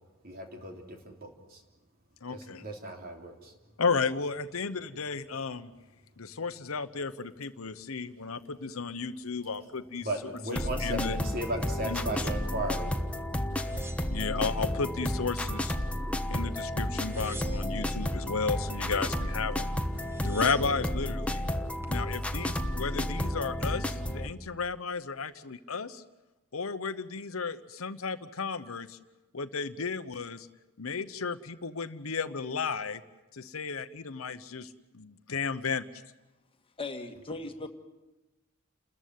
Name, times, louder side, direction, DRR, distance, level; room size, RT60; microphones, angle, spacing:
voice 1, 0.2-0.8 1.2-1.3 2.3-3.3 10.0-12.9, right 1 dB, 45° right, 3 dB, 3.3 m, -35 dB
voice 2, 2.2-2.6 3.8-5.7 6.2-10.1 10.5-11.2 11.8-12.0 14.1-15.8 16.3-19.7 20.2-21.5 21.9-26.0 26.5-29.0 29.3-30.5 30.8-33.0 33.3-35.9, left 5 dB, 75° left, 10 dB, 1.0 m, -33 dB
sound 1, 10.6-24.3, left 1 dB, 5° left, 1.2 m, -32 dB
sound 2, 13.5-14.9 15.3-16.1 16.9-18.0 19.5-19.6 19.8-20.8 21.5-22.0, right 1 dB, 10° right, 1.6 m, -49 dB
voice 3, 36.8-37.7, left 3 dB, 25° left, 6 dB, 1.8 m, -37 dB
30.0 x 14.0 x 9.4 m, 1.1 s
head